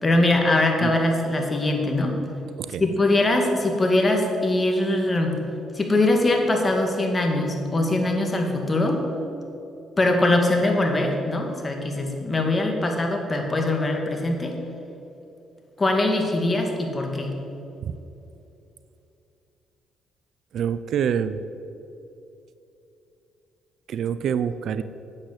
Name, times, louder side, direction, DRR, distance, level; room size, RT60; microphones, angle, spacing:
voice 1, 0.0-2.2 2.8-5.4 5.7-9.0 10.0-14.6 15.8-17.3, left 2 dB, 25° left, 2 dB, 2.3 m, -22 dB
voice 2, 20.5-21.4 23.9-24.8, right 8 dB, 70° right, 13 dB, 0.5 m, -26 dB
10.0 x 8.8 x 8.2 m, 2.9 s
cardioid pair, 90°, 0 cm